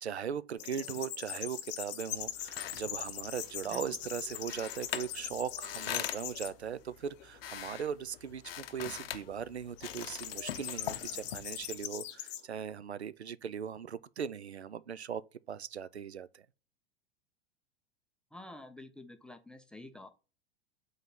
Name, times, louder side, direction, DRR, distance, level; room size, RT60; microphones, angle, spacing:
voice 1, 0.0-15.2 15.5-16.5, right 8 dB, 80° right, 0.5 m, -39 dB
sound 1, 0.6-6.5 7.1-7.6 9.8-12.4, left 12 dB, 35° left, 0.9 m, -41 dB
sound 2, 2.1-11.8, left 10 dB, 65° left, 0.7 m, -44 dB
voice 2, 18.3-20.1, left 1 dB, 5° left, 0.4 m, -49 dB
5.2 x 4.0 x 5.9 m
figure-of-eight pair, 90°, 32 cm